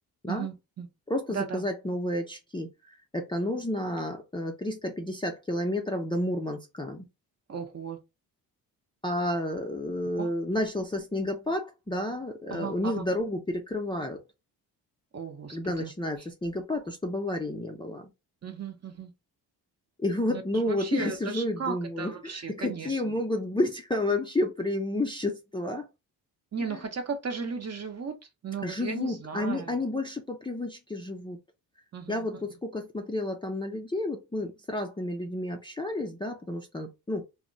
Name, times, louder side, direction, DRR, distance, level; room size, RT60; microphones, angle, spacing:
voice 1, 0.3-0.9 1.3-1.6 7.5-8.0 10.2-10.3 12.5-13.1 15.1-15.9 18.4-19.1 20.3-23.2 26.5-28.2 28.4-29.8 31.9-32.2, right 5 dB, 35° right, 0.8 m, -36 dB
voice 2, 1.1-2.7 3.1-7.1 9.0-14.2 15.5-18.1 20.0-25.9 26.7-26.8 28.6-31.4 32.1-37.2, left 1 dB, 10° left, 0.5 m, -31 dB
2.2 x 2.1 x 3.8 m
supercardioid pair, 65°, 44 cm